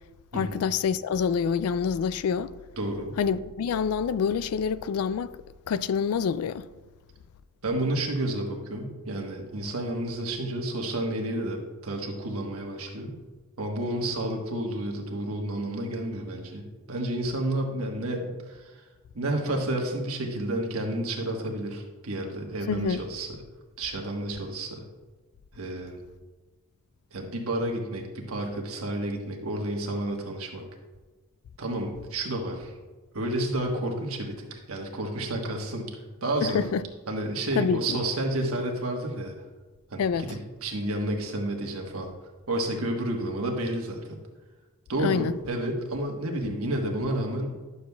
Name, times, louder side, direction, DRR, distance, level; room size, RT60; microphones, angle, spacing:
voice 1, 0.3-2.5 3.2-5.3 5.7-6.7 22.7-23.0 36.4-36.8 37.6-38.0 40.0-40.4 45.0-45.3, left 6 dB, 75° left, 0.3 m, -26 dB
voice 2, 2.8-3.1 7.6-13.2 13.6-18.8 19.1-23.3 23.8-24.8 25.5-26.0 27.1-30.6 31.6-32.7 33.1-35.9 36.2-36.6 37.1-39.3 39.9-42.1 42.5-44.2 44.9-47.6, right 1 dB, 75° right, 1.3 m, -30 dB
11.0 x 6.8 x 2.3 m
head